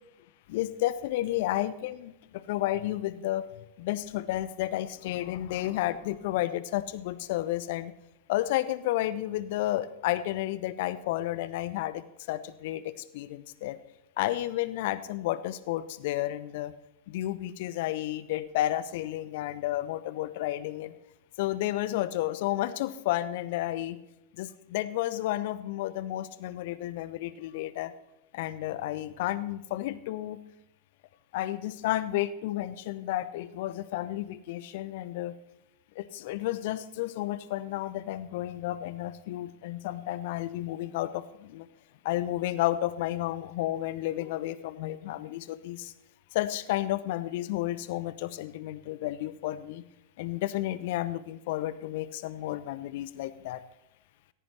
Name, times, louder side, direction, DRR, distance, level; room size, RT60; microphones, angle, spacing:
voice 1, 0.5-3.5 3.8-7.9 8.3-13.8 14.2-16.7 17.1-20.9 21.4-24.0 24.4-27.9 28.3-30.4 31.3-35.4 36.0-41.7 42.0-45.9 46.3-49.8 50.2-53.6, left 14 dB, 50° left, 16 dB, 0.7 m, -32 dB
17.5 x 15.0 x 3.4 m, 0.90 s
figure-of-eight pair, 90°, 0 cm